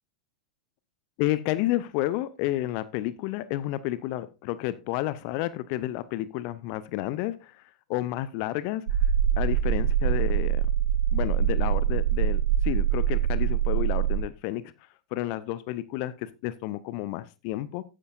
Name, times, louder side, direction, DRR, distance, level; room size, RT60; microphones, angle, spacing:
voice 1, 1.2-7.5 7.9-8.8 9.4-10.6 11.1-14.6 15.1-17.8, left 15 dB, 45° left, 16 dB, 0.7 m, -31 dB
sound 1, 8.9-14.2, right 9 dB, 65° right, 0.9 m, -24 dB
13.5 x 9.9 x 2.5 m, 0.28 s
figure-of-eight pair, 90°, 4 cm